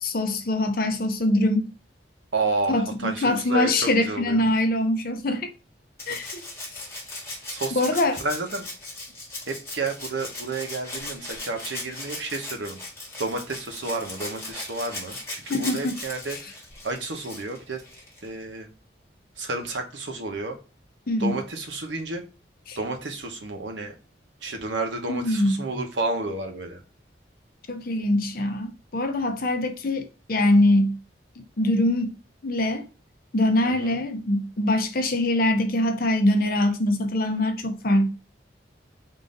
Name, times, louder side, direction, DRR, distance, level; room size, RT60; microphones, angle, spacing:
voice 1, 0.0-1.7 2.7-5.5 6.1-6.4 7.7-8.2 15.5-16.0 21.1-21.4 22.7-22.8 25.1-25.5 27.7-31.0 31.6-32.1 32.4-32.9 33.3-38.1, left 1 dB, 50° left, 0.6 m, -23 dB
voice 2, 2.3-4.5 6.1-6.3 7.5-7.8 8.2-8.7 9.5-12.8 13.2-16.6 16.8-17.8 18.2-18.7 19.4-20.6 21.2-22.2 22.8-23.9 24.4-26.8 33.6-34.0, right 3 dB, 80° right, 0.9 m, -31 dB
Rattle (instrument), 6.0-18.3 19.7-19.8, left 2 dB, 15° left, 1.2 m, -38 dB
3.8 x 2.6 x 3.8 m
head